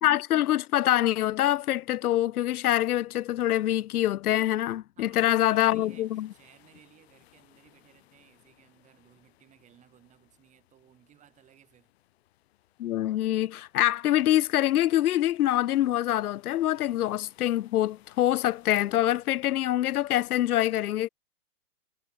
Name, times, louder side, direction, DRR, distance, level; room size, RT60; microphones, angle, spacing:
voice 1, 0.0-6.3 12.8-21.1, left 13 dB, 70° left, 0.6 m, -25 dB
voice 2, 5.0-11.9, right 11 dB, 15° right, 5.4 m, -59 dB
sound 1, 5.5-19.4, left 14 dB, 40° left, 2.8 m, -63 dB
hypercardioid pair, 160°, 46 cm